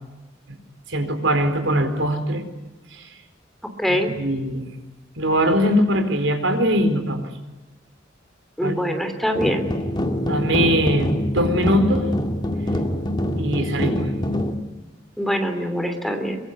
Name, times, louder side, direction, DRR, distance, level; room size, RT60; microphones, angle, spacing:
voice 1, 0.9-2.4 2.9-3.1 3.9-4.7 5.2-7.3 8.6-8.7 10.2-12.1 13.4-14.0, equal, 80° right, 7 dB, 4.5 m, -21 dB
voice 2, 3.8-4.1 8.6-9.7 15.2-16.4, equal, ahead, 6 dB, 3.2 m, -23 dB
sound 1, 9.3-14.6, equal, 25° left, 2.3 m, -24 dB
24.5 x 23.5 x 9.8 m, 1.1 s
head